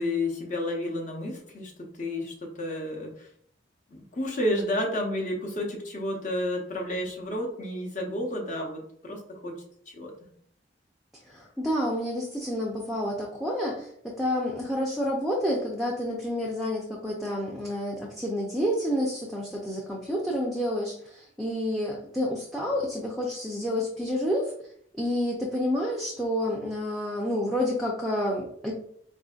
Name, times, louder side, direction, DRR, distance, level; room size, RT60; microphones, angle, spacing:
voice 1, 0.0-3.3 3.9-9.6 9.9-10.1, left 1 dB, 40° left, 0 dB, 0.7 m, -31 dB
voice 2, 11.2-24.5 25.0-28.7, equal, ahead, -2 dB, 0.4 m, -29 dB
4.3 x 2.6 x 2.3 m, 0.66 s
head